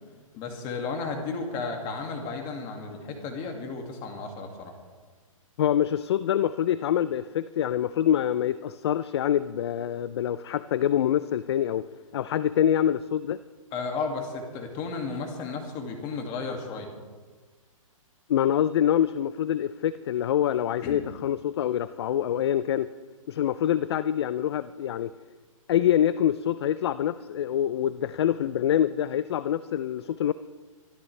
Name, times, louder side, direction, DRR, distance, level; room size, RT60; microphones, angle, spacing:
voice 1, 0.4-4.7 13.7-16.9 20.8-21.0, left 4 dB, 25° left, 3 dB, 2.1 m, -33 dB
voice 2, 5.6-11.9 12.1-13.4 18.3-22.9 23.3-25.1 25.7-30.3, left 10 dB, 50° left, 15 dB, 0.4 m, -25 dB
24.0 x 13.0 x 3.3 m, 1.4 s
hypercardioid pair, 160°, 18 cm